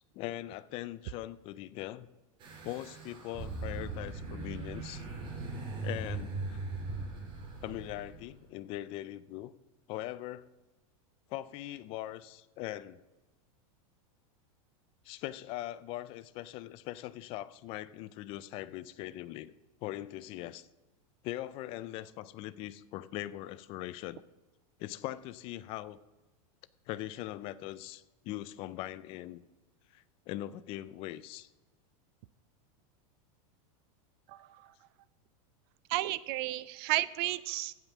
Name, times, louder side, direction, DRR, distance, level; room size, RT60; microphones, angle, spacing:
voice 1, 0.1-2.1 2.6-5.0 5.8-6.6 7.6-9.5 9.9-10.5 11.3-13.0 15.0-19.5 19.8-20.7 21.2-24.2 24.8-26.0 26.9-29.4 29.9-31.5, left 15 dB, 30° left, 18 dB, 0.3 m, -41 dB
sound 1, 2.4-8.4, right 3 dB, 25° right, 2.3 m, -39 dB
voice 2, 34.3-34.7 35.9-37.7, right 17 dB, 40° right, 18 dB, 0.4 m, -33 dB
15.0 x 5.6 x 5.9 m, 1.1 s
supercardioid pair, 160°, 18 cm